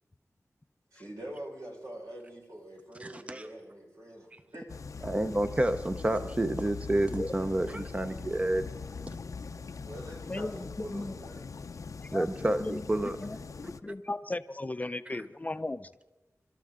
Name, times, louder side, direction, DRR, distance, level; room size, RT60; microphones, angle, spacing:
voice 1, 0.9-5.0 9.9-10.5 10.8-11.4, right 1 dB, 90° right, -2 dB, 5.2 m, -45 dB
voice 2, 3.0-3.5 4.3-4.4 5.0-8.7 12.1-13.1 15.1-15.2, right 1 dB, 25° right, 9 dB, 0.6 m, -29 dB
sound 1, 4.7-13.8, left 5 dB, 75° left, 0.6 m, -42 dB
voice 3, 10.3-11.1 12.1-12.3 12.6-15.9, left 2 dB, 30° left, 12 dB, 0.5 m, -36 dB
28.0 x 13.0 x 3.7 m, 1.1 s
wide cardioid pair, 90°, 6 cm